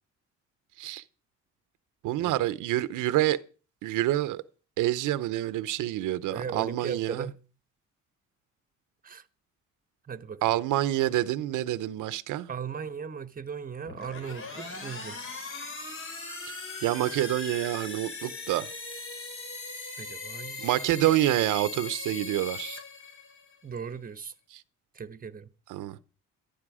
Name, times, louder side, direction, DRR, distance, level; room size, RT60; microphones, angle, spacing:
voice 1, 2.0-3.4 3.8-4.4 4.8-7.3 10.4-12.5 16.5-16.6 16.8-18.7 20.6-22.8 24.5-24.6 25.7-26.0, right 14 dB, 90° right, 0.8 m, -27 dB
voice 2, 6.3-7.4 9.0-9.3 10.0-10.6 12.5-15.2 20.0-20.7 23.6-24.3 24.9-25.5, right 6 dB, 30° right, 1.2 m, -38 dB
sound 1, 13.8-23.6, left 3 dB, 45° left, 4.4 m, -39 dB
14.0 x 12.0 x 4.9 m
cardioid pair, 90°, 30 cm